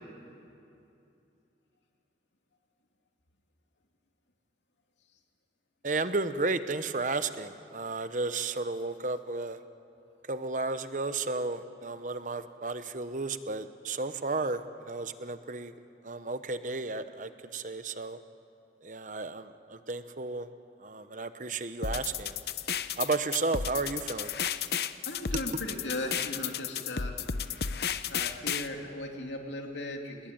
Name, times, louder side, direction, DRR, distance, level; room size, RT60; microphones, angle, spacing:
voice 1, 5.8-9.6 10.3-15.7 16.0-18.2 18.8-20.5 20.8-22.4 23.0-24.4, right 3 dB, 45° right, 11 dB, 0.9 m, -33 dB
sound 1, 21.8-28.7, left 7 dB, 60° left, 0.8 m, -33 dB
voice 2, 25.0-27.1 28.1-30.3, left 1 dB, 90° left, 2 dB, 2.8 m, -37 dB
29.0 x 20.0 x 8.8 m, 2.7 s
head